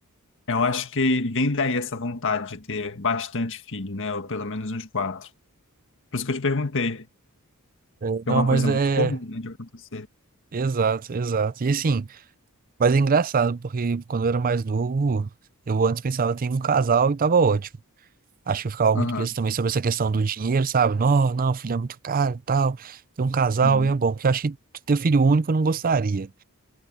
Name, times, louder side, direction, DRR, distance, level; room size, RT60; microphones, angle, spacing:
voice 1, 0.5-5.3 6.1-7.1 8.3-10.1 18.9-19.3 23.6-23.9, left 3 dB, 60° left, 1.8 m, -27 dB
voice 2, 8.0-9.2 10.5-12.1 12.8-15.3 15.7-17.7 18.5-24.6 24.9-26.3, right 4 dB, 40° right, 0.5 m, -22 dB
head